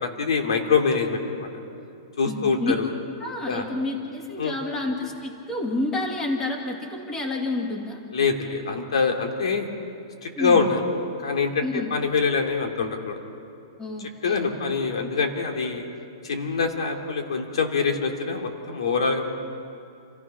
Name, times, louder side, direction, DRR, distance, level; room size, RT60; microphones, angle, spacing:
voice 1, 0.0-1.5 2.2-2.9 3.5-3.7 4.4-4.6 8.1-9.7 10.2-10.8 11.2-13.2 14.0-15.8 16.2-19.3, left 5 dB, 85° left, 3 dB, 2.9 m, -24 dB
voice 2, 2.2-2.7 3.2-8.0 10.4-10.7 11.6-11.9 13.8-14.5, left 2 dB, 15° left, 1 dB, 2.3 m, -29 dB
29.0 x 15.0 x 6.0 m, 2.5 s
hypercardioid pair, 150°, 3 cm